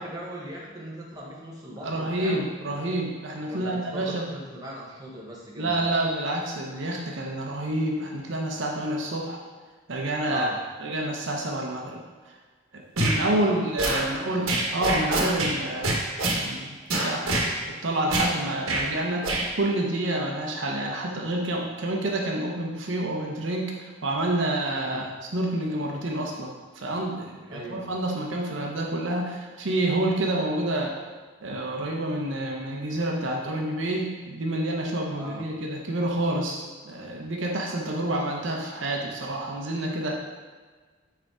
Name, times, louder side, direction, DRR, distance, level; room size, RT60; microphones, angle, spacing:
voice 1, 0.0-2.4 3.5-5.7 10.2-10.6 13.3-13.6 14.0-14.5 24.7-25.0 27.5-27.8 35.1-35.4, equal, 20° right, -4 dB, 0.9 m, -39 dB
voice 2, 1.8-4.2 5.6-9.4 9.9-10.5 10.8-12.0 12.7-14.5 14.7-16.0 16.3-16.7 17.0-19.3 19.6-31.0 31.4-40.1, right 1 dB, 65° right, 0 dB, 0.7 m, -28 dB
sound 1, 13.0-13.2 13.8-14.0 14.5-15.5 15.8-16.4 16.9-17.5 18.1-18.3 18.7-18.8 19.2-19.4, right 2 dB, 90° right, 1.1 m, -25 dB
4.8 x 4.4 x 4.8 m, 1.4 s
head